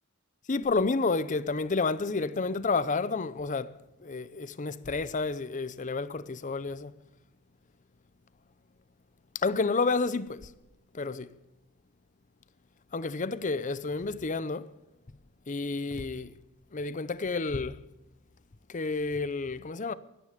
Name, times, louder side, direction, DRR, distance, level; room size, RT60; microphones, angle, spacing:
voice 1, 0.5-6.9 9.3-10.5 10.9-11.3 12.9-14.7 15.5-16.3 16.7-17.8 18.7-19.9, left 3 dB, 35° left, 0.6 m, -30 dB
17.0 x 13.0 x 5.1 m
head